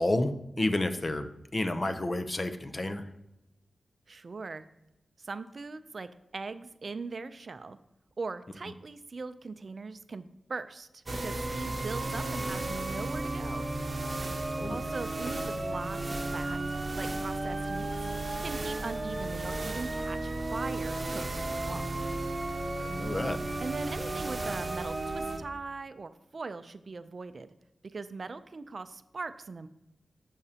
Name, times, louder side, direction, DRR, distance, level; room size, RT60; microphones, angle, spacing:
voice 1, 0.0-3.0 14.5-14.8 22.8-23.4, left 1 dB, 30° left, 8 dB, 0.6 m, -30 dB
voice 2, 4.1-4.6 5.2-7.8 8.2-13.7 14.7-16.6 16.9-17.9 18.4-22.0 23.6-27.5 27.9-29.7, right 4 dB, 50° right, 11 dB, 0.5 m, -40 dB
sound 1, 11.1-25.4, right 2 dB, 35° right, 1.1 m, -34 dB
11.5 x 7.2 x 2.8 m, 0.93 s
wide cardioid pair, 100°, 0 cm